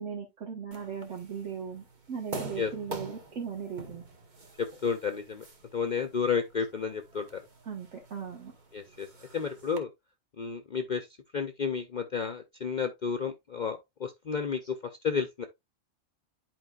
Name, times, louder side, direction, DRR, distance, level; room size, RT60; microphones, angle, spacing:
voice 1, 0.0-4.0 7.7-8.5, right 6 dB, 65° right, 1.7 m, -38 dB
sound 1, 0.7-9.8, right 2 dB, 35° right, 1.2 m, -46 dB
voice 2, 4.6-5.4 5.7-7.4 8.7-9.1 9.3-9.9 10.4-11.1 11.3-14.8 15.0-15.4, left 6 dB, 45° left, 0.7 m, -31 dB
11.0 x 4.5 x 2.3 m
omnidirectional pair, 1.4 m